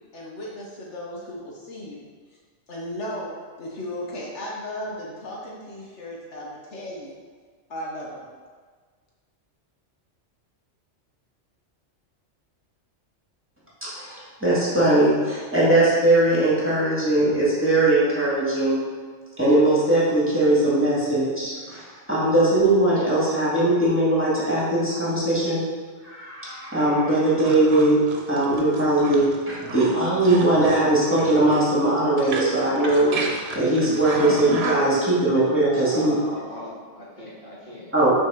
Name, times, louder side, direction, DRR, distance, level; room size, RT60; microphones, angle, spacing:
voice 1, 0.1-2.0 2.7-7.1 7.7-8.3, left 1 dB, 70° left, -4 dB, 1.4 m, -35 dB
voice 2, 13.8-18.8 19.4-25.6 26.0-28.0 28.3-33.1 33.5-36.2 37.9-38.1, right 1 dB, 10° right, -9 dB, 2.1 m, -20 dB
sound 1, 27.3-35.1, right 3 dB, 60° right, 1.1 m, -33 dB
voice 3, 35.7-37.9, left 1 dB, 45° left, -7 dB, 2.1 m, -39 dB
6.2 x 4.4 x 5.7 m, 1.5 s
omnidirectional pair, 1.2 m